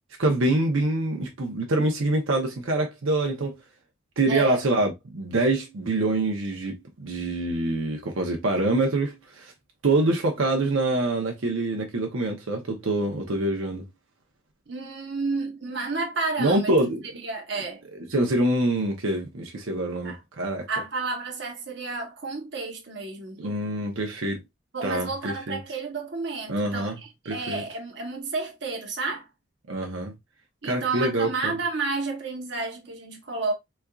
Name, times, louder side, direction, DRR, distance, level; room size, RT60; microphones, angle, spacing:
voice 1, 0.2-3.6 4.2-9.5 9.8-13.8 16.4-17.0 17.9-20.7 23.4-24.4 24.8-25.6 26.5-27.0 27.3-27.6 29.7-30.1 30.6-31.5, right 2 dB, 85° right, 0.8 m, -25 dB
voice 2, 4.3-4.6 14.7-16.7 17.2-17.8 20.0-20.2 20.7-23.4 24.7-29.3 30.6-33.5, right 3 dB, 55° right, 1.0 m, -31 dB
4.2 x 2.4 x 2.3 m
head